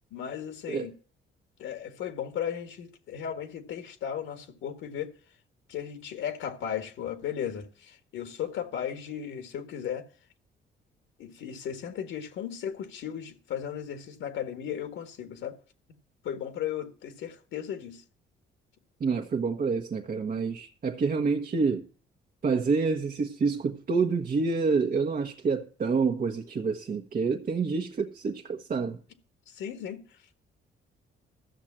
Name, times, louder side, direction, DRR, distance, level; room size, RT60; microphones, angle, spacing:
voice 1, 0.1-0.9 1.6-5.1 5.7-10.0 11.2-15.6 16.2-18.0 29.5-30.0, left 9 dB, 85° left, 1.8 m, -36 dB
voice 2, 19.0-21.8 22.4-29.0, right 4 dB, 45° right, 1.2 m, -28 dB
14.0 x 6.5 x 7.5 m
cardioid pair, 90°, 20 cm